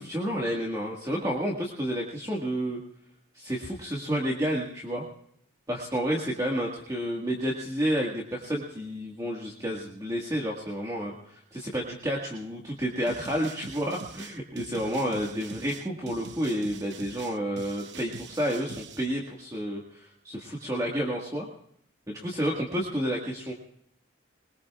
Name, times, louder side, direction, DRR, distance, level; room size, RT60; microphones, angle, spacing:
voice 1, 0.0-2.8 3.3-5.0 5.7-21.5 22.1-23.5, equal, 20° right, -2 dB, 1.8 m, -30 dB
sound 1, 13.1-19.1, right 4 dB, 65° right, 0.9 m, -44 dB
22.0 x 21.5 x 2.4 m, 0.71 s
head